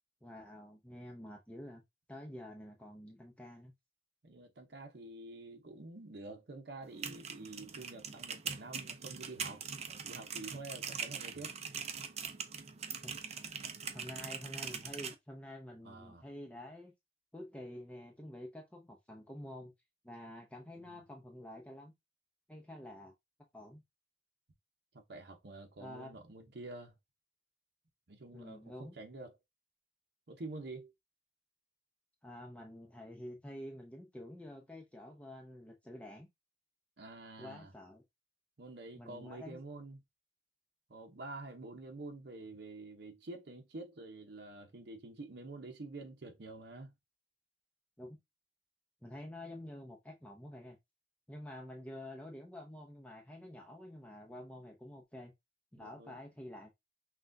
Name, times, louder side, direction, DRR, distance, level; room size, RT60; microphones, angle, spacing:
voice 1, 0.2-1.8 2.1-3.7 13.0-13.1 13.9-16.9 17.3-19.7 20.0-21.9 22.5-23.1 23.5-23.8 25.8-26.1 28.3-29.0 32.2-36.3 37.4-38.0 39.0-39.6 48.0-48.2 49.0-50.8 51.3-55.3 55.7-56.7, left 1 dB, 10° left, 0.6 m, -48 dB
voice 2, 4.2-11.6 15.8-16.3 20.9-21.0 24.9-26.9 28.1-29.4 30.3-30.9 37.0-37.7 38.6-40.0 40.9-46.9 55.8-56.2, right 2 dB, 65° right, 0.8 m, -48 dB
sound 1, 6.8-15.1, right 6 dB, 40° right, 0.5 m, -42 dB
5.9 x 2.3 x 2.6 m
head